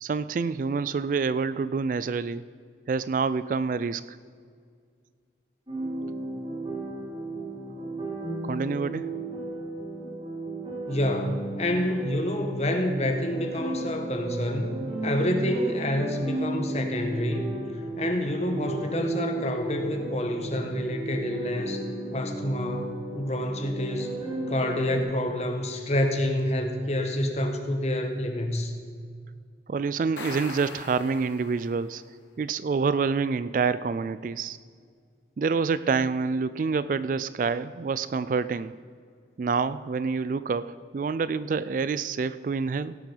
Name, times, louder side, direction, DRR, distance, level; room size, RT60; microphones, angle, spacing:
voice 1, 0.0-2.4 2.9-4.2 7.4-7.5 8.4-9.1 29.7-32.0 32.4-34.6 35.4-38.7 39.4-43.0, right 5 dB, 45° right, 16 dB, 0.3 m, -27 dB
sound 1, 5.7-25.0, right 2 dB, 30° right, 4.1 m, -34 dB
voice 2, 10.9-17.5 18.0-21.9 22.1-24.1 24.5-28.7, left 1 dB, 35° left, 5 dB, 1.3 m, -28 dB
sound 2, 30.0-31.9, left 4 dB, 85° left, 1.5 m, -41 dB
17.0 x 7.7 x 5.5 m, 2.1 s
head